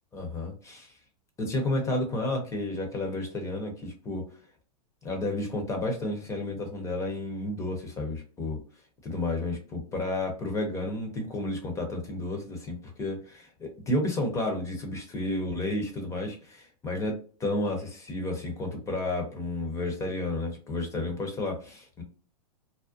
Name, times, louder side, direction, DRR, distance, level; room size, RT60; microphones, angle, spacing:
voice 1, 0.1-0.9 1.4-4.3 5.0-8.6 9.0-22.0, left 2 dB, 15° left, 3 dB, 0.6 m, -31 dB
2.5 x 2.0 x 2.4 m, 0.41 s
hypercardioid pair, 140°, 21 cm